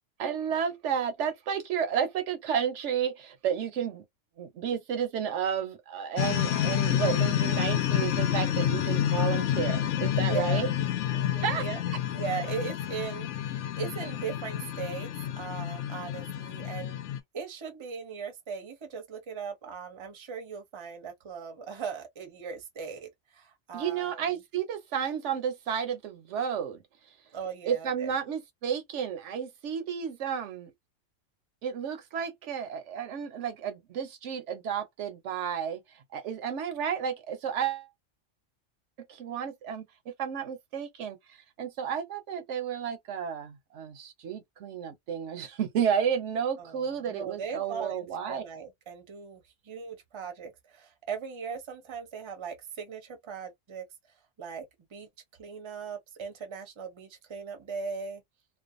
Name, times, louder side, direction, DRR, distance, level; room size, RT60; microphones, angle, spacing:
voice 1, 0.2-4.0 4.4-10.7 11.4-11.6 23.7-26.8 27.7-30.7 31.6-37.9 39.1-48.4, right 8 dB, 75° right, 0.9 m, -32 dB
sound 1, 6.2-17.2, left 11 dB, 80° left, 0.9 m, -29 dB
voice 2, 10.2-10.7 11.1-11.8 12.1-13.3 13.8-15.1 15.4-17.0 17.3-24.2 27.3-28.1 46.6-53.8 54.4-54.6 54.9-55.1 55.4-58.2, right 6 dB, 30° right, 0.6 m, -39 dB
2.5 x 2.2 x 2.5 m
omnidirectional pair, 1.3 m